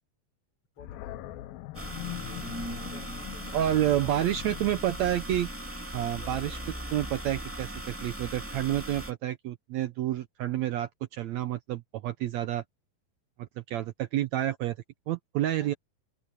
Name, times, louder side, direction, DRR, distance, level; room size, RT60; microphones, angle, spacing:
Animal, 0.8-7.9, left 16 dB, 85° left, 2.7 m, -44 dB
voice 1, 0.8-1.5 2.8-4.8 15.6-15.8, left 4 dB, 40° left, 5.6 m, -53 dB
sound 1, 1.7-9.1, right 1 dB, 5° right, 1.6 m, -38 dB
voice 2, 3.5-5.5 5.9-6.6 6.9-12.6 13.4-14.8 15.1-15.7, right 12 dB, 80° right, 1.6 m, -29 dB
omnidirectional pair, 4.0 m